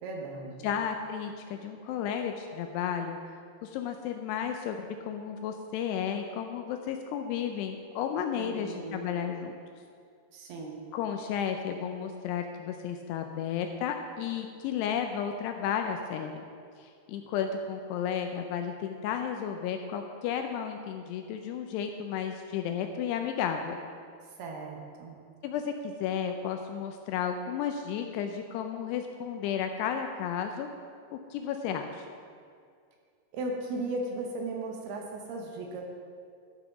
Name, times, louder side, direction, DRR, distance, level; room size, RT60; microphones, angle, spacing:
voice 1, 0.0-0.7 8.4-9.1 10.3-10.7 24.4-25.2 33.3-35.8, right 2 dB, 70° right, 1 dB, 2.8 m, -36 dB
voice 2, 0.6-3.2 3.6-9.6 10.9-16.4 16.8-23.8 25.4-30.7 31.1-32.1, left 8 dB, 80° left, 5 dB, 2.5 m, -33 dB
12.5 x 5.8 x 5.9 m, 2.3 s
omnidirectional pair, 5.2 m